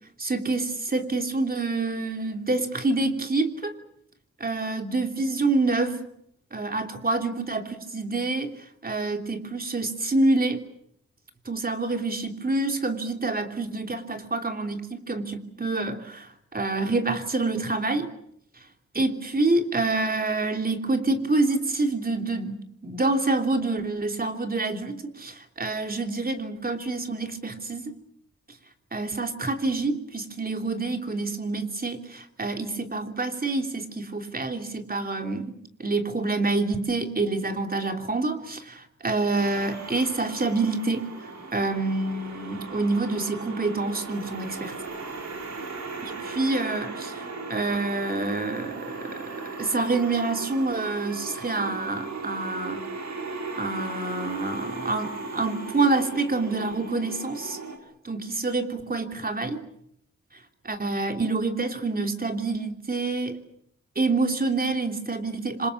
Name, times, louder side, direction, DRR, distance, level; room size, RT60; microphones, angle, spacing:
voice 1, 0.2-3.7 4.4-6.1 6.5-8.5 8.8-10.6 11.4-18.1 18.9-27.9 28.9-35.5 35.8-41.0 41.5-44.7 46.0-47.2 47.5-52.9 53.6-57.6 58.0-59.6 60.6-63.4 63.9-65.7, right 3 dB, 30° right, 5 dB, 3.2 m, -27 dB
sound 1, 39.4-57.8, right 4 dB, 70° right, 4.9 m, -37 dB
27.0 x 26.0 x 7.2 m, 0.73 s
wide cardioid pair, 100°, 29 cm